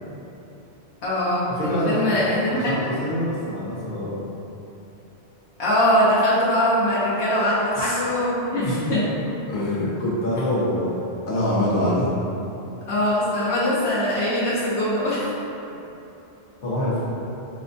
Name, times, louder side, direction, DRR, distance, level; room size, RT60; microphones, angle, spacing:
voice 1, 1.0-2.9 5.6-8.6 8.9-9.0 12.9-15.3, left 1 dB, 75° left, -9 dB, 1.0 m, -22 dB
voice 2, 1.6-4.3 7.7-8.0 8.6-9.2 9.5-12.1 16.6-17.0, left 1 dB, 50° left, -9 dB, 1.1 m, -25 dB
5.9 x 2.1 x 2.6 m, 3.0 s
omnidirectional pair, 1.2 m